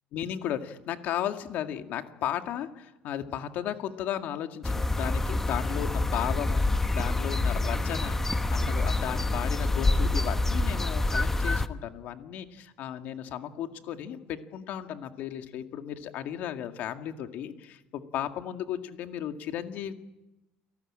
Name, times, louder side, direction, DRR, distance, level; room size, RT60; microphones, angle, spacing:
voice 1, 0.1-19.9, left 10 dB, 55° left, 7 dB, 2.0 m, -35 dB
sound 1, 4.6-11.7, left 2 dB, 10° left, 1.0 m, -27 dB
29.0 x 19.0 x 8.8 m, 0.98 s
cardioid pair, 150°, 4 cm